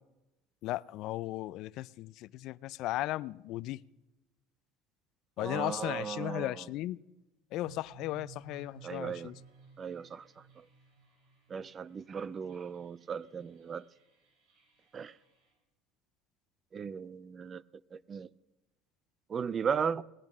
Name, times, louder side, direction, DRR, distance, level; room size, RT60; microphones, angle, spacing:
voice 1, 0.6-3.8 5.4-7.0 7.5-9.4, left 16 dB, 60° left, 0.4 m, -36 dB
voice 2, 5.4-6.6 8.8-9.3 9.8-10.3 10.6-10.7 11.5-13.8 14.9-15.1 16.7-17.6 17.9-18.3 19.3-20.0, right 6 dB, 30° right, 0.4 m, -36 dB
sound 1, 7.6-15.5, right 5 dB, 60° right, 6.8 m, -58 dB
18.0 x 10.5 x 6.1 m
supercardioid pair, 125°, 0 cm